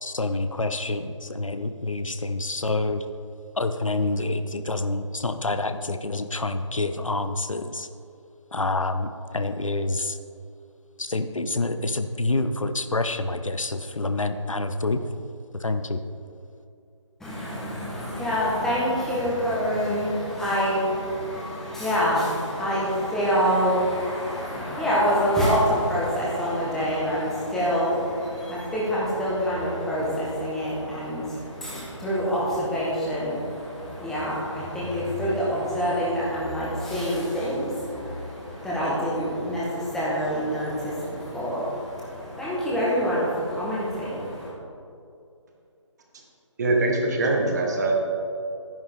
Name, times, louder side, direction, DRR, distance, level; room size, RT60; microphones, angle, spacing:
voice 1, 0.0-3.0 3.5-7.9 8.5-10.2 11.0-15.0 15.5-16.0, left 2 dB, 85° left, 9 dB, 0.8 m, -27 dB
voice 2, 17.2-44.5, equal, 5° left, -7 dB, 1.4 m, -26 dB
voice 3, 46.6-47.9, right 2 dB, 35° right, 1 dB, 1.4 m, -23 dB
11.0 x 10.5 x 3.7 m, 2.6 s
figure-of-eight pair, 155°, 16 cm